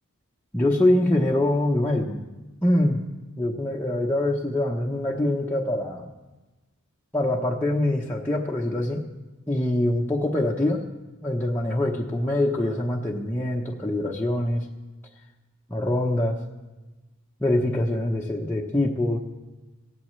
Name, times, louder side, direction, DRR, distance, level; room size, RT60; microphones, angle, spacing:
voice 1, 0.5-2.2 2.6-3.0 3.4-6.1 7.1-9.0 9.5-10.8 11.2-14.7 15.7-16.4 17.4-19.2, left 1 dB, 10° left, -4 dB, 1.0 m, -24 dB
17.0 x 16.5 x 3.3 m, 1.1 s
head